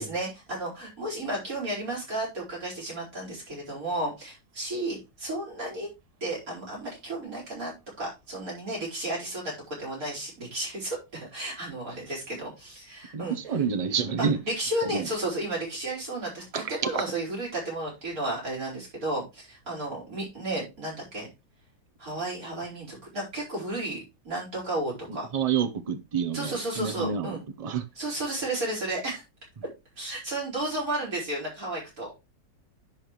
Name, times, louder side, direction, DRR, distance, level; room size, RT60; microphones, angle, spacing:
voice 1, 0.0-5.9 6.2-13.4 14.2-21.3 22.0-24.0 24.2-25.3 26.3-27.4 28.0-29.2 30.0-32.1, right 1 dB, 55° right, 5.2 m, -33 dB
voice 2, 13.1-14.4 14.8-15.1 16.5-16.7 25.1-27.8, right 6 dB, 35° right, 0.6 m, -29 dB
10.5 x 5.4 x 3.1 m
omnidirectional pair, 1.8 m